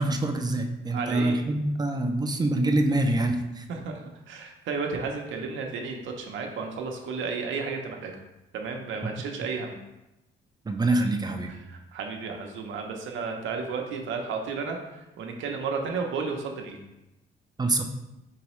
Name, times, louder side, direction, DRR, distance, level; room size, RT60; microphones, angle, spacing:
voice 1, 0.0-3.6 10.7-11.5 17.6-17.8, right 2 dB, 20° right, 5 dB, 0.5 m, -25 dB
voice 2, 0.9-1.4 3.7-4.0 4.3-8.1 8.5-9.8 11.7-16.8, right 4 dB, 75° right, 2 dB, 0.7 m, -33 dB
4.7 x 3.0 x 3.0 m, 0.95 s
cardioid pair, 90°, 20 cm